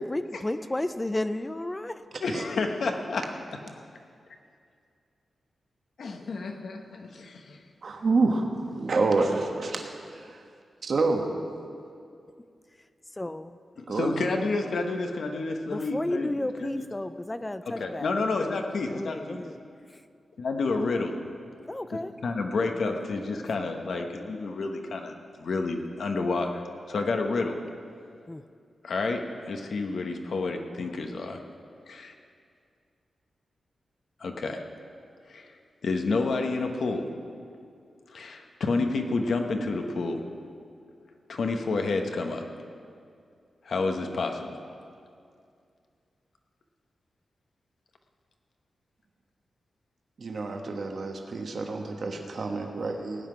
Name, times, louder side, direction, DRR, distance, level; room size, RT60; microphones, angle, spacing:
voice 1, 0.0-2.0 13.2-13.6 15.7-18.1 18.9-19.6 21.7-22.1 28.3-28.4, left 1 dB, 15° left, 12 dB, 0.3 m, -32 dB
voice 2, 2.2-3.2 6.0-7.6 13.8-16.3 16.6-16.9 17.7-19.4 20.4-21.1 21.9-26.6 26.9-27.6 28.8-31.4 31.9-32.1 34.2-34.6 35.3-35.5 35.8-37.1 38.1-40.2 41.3-42.5 43.6-44.6, left 3 dB, 60° left, 4 dB, 1.0 m, -29 dB
voice 3, 7.8-10.4 10.8-11.2 13.9-14.3 50.2-53.3, right 3 dB, 50° right, 3 dB, 1.2 m, -28 dB
17.0 x 5.8 x 9.6 m, 2.4 s
wide cardioid pair, 155°, 0 cm